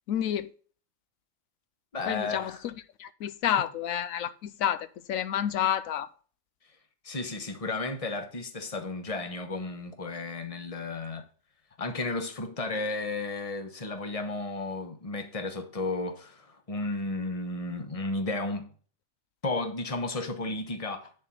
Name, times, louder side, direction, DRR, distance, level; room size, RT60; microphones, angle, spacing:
voice 1, 0.1-0.5 2.1-2.5 3.0-6.1, left 10 dB, 80° left, 1.0 m, -29 dB
voice 2, 1.9-2.6 7.0-11.2 11.8-18.7 19.4-21.1, left 2 dB, 25° left, 1.2 m, -33 dB
10.0 x 4.3 x 5.5 m
omnidirectional pair, 1.4 m